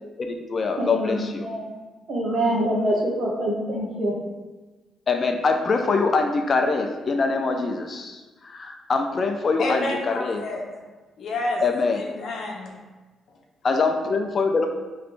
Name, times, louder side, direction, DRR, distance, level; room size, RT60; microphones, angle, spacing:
voice 1, 0.2-1.5 5.1-10.4 11.6-12.0 13.6-14.7, left 4 dB, 40° left, 4 dB, 0.4 m, -24 dB
voice 2, 0.8-1.7 2.1-4.1, right 1 dB, 50° right, -4 dB, 1.2 m, -25 dB
voice 3, 9.6-10.6 11.2-11.6 11.9-12.7, left 2 dB, 60° left, 0 dB, 0.8 m, -29 dB
3.1 x 2.9 x 4.6 m, 1.2 s
cardioid pair, 90°, 0 cm